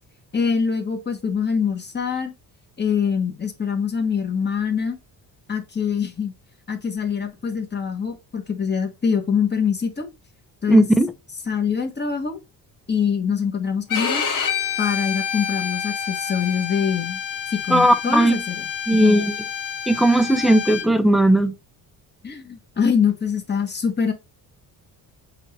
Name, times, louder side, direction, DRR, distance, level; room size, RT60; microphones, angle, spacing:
voice 1, 0.3-2.3 2.8-5.0 5.5-6.3 6.7-10.1 10.6-10.8 11.5-12.4 12.9-14.2 14.8-17.2 17.5-19.2 22.2-24.1, left 6 dB, 25° left, 1.7 m, -24 dB
voice 2, 10.7-11.1 17.7-18.4 18.9-19.3 19.9-21.5, right 1 dB, ahead, 0.7 m, -17 dB
Bowed string instrument, 13.9-20.9, left 8 dB, 55° left, 1.7 m, -28 dB
7.5 x 2.8 x 4.6 m
cardioid pair, 100°, 39 cm